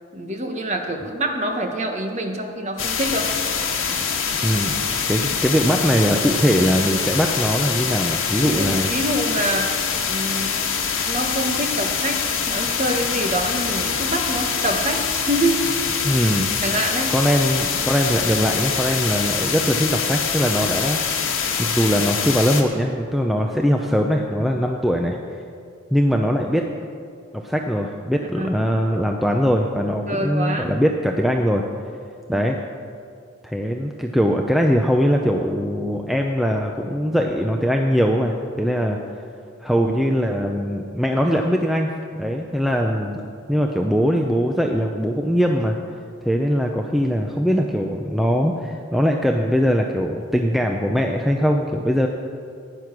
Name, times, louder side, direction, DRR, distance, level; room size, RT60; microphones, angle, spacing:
voice 1, 0.1-3.3 8.4-9.8 10.0-10.7 11.0-12.2 12.5-15.9 16.6-17.1 28.4-28.6 30.1-30.7 32.3-32.5, right 1 dB, 35° right, 3 dB, 1.3 m, -26 dB
sound 1, 2.8-22.6, left 6 dB, 75° left, 1.6 m, -24 dB
voice 2, 4.4-8.9 16.0-16.5 17.1-25.2 25.9-26.6 27.3-31.6 32.3-32.6 33.4-39.0 39.6-41.9 42.2-43.2 43.5-45.8 46.3-52.1, equal, ahead, 2 dB, 0.5 m, -21 dB
15.5 x 9.8 x 6.1 m, 2.3 s
head